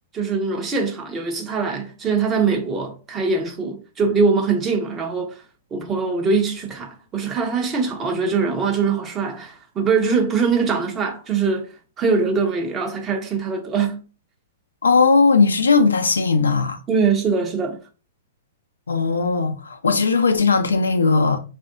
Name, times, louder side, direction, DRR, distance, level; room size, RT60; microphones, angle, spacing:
voice 1, 0.1-5.4 5.7-11.7 12.0-14.0 16.9-17.8, right 5 dB, 25° right, 0.7 m, -22 dB
voice 2, 14.8-16.8 18.9-21.4, left 4 dB, 90° left, 0.4 m, -18 dB
3.5 x 2.5 x 2.4 m
hypercardioid pair, 120°, 0 cm